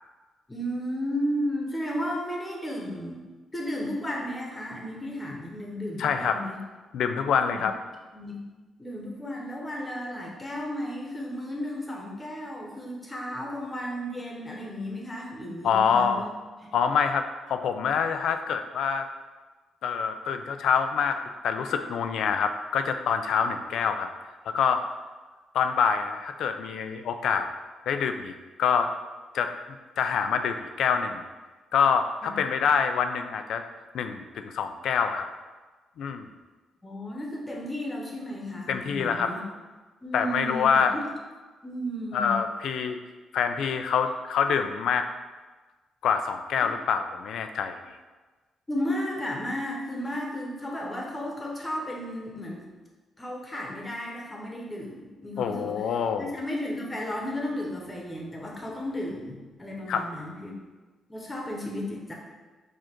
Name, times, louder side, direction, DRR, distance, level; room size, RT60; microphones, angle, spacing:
voice 1, 0.5-3.2 3.5-6.6 7.5-7.6 8.1-8.5 8.8-16.3 16.6-16.7 32.2-32.4 36.8-39.4 40.0-40.8 41.6-42.4 48.7-52.7 53.2-55.8 56.2-60.6 61.1-62.1, equal, 15° left, -1 dB, 0.9 m, -34 dB
voice 2, 6.0-6.4 6.9-7.7 15.6-16.3 16.7-19.1 19.8-24.1 24.5-24.8 25.5-27.5 27.9-28.3 28.6-28.9 29.3-29.5 30.0-31.2 31.7-33.6 33.9-35.3 36.0-36.3 38.7-39.3 40.1-40.9 42.1-43.0 43.3-45.1 46.0-47.8 55.4-56.3 59.9-60.1, left 6 dB, 80° left, 7 dB, 0.3 m, -26 dB
4.8 x 2.5 x 4.4 m, 1.3 s
cardioid pair, 110°, 0 cm